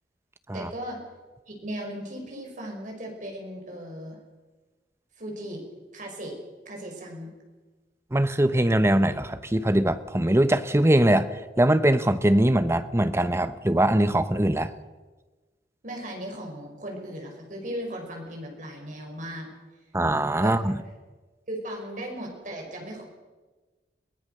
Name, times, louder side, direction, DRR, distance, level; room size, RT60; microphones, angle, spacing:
voice 1, 0.5-1.0 1.5-4.2 5.2-5.6 5.9-6.4 6.7-7.3 15.8-19.5 20.4-20.7 21.5-23.1, right 1 dB, 45° right, 1 dB, 5.4 m, -37 dB
voice 2, 8.1-14.7 19.9-20.8, right 1 dB, 15° right, 12 dB, 0.8 m, -22 dB
22.5 x 17.5 x 6.7 m, 1.3 s
head